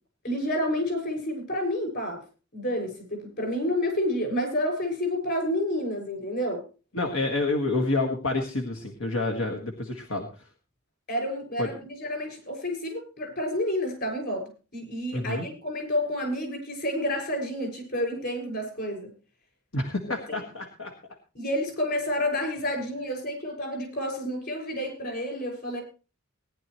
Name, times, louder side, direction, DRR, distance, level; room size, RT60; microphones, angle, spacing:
voice 1, 0.2-2.2 2.5-6.6 11.1-19.1 21.3-25.8, left 1 dB, 55° left, 3 dB, 6.3 m, -29 dB
voice 2, 6.9-10.3 11.6-11.7 15.1-15.5 19.7-20.9, left 2 dB, 90° left, 2 dB, 1.7 m, -28 dB
19.0 x 10.5 x 3.1 m, 0.34 s
head